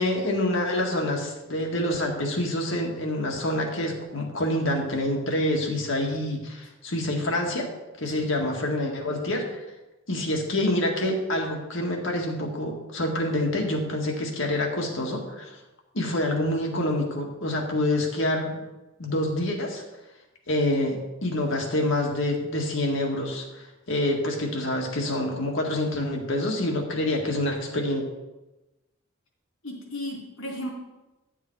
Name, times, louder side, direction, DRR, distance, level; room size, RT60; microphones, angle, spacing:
voice 1, 0.0-7.7 8.0-9.4 10.1-15.5 15.9-18.6 19.0-19.8 20.5-28.0, left 1 dB, 70° left, 1 dB, 1.9 m, -27 dB
voice 2, 29.6-30.7, left 1 dB, 85° left, -2 dB, 3.4 m, -34 dB
11.5 x 7.2 x 4.7 m, 1.0 s
head